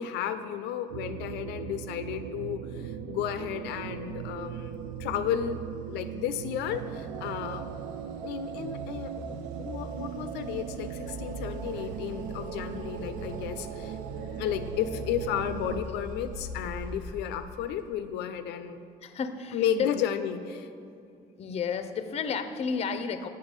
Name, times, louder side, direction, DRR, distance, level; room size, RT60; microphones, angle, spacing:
voice 1, 0.0-5.6 5.9-7.7 8.2-14.0 14.4-18.8 19.5-20.7, left 9 dB, 90° left, 10 dB, 0.4 m, -33 dB
sound 1, 0.9-15.8, right 8 dB, 85° right, 0.4 m, -38 dB
sound 2, 3.6-18.1, left 1 dB, 50° right, 1.1 m, -44 dB
voice 2, 19.0-19.9 21.4-23.3, left 6 dB, 40° left, 9 dB, 0.5 m, -32 dB
7.2 x 5.5 x 5.1 m, 2.4 s
cardioid pair, 110°, 17 cm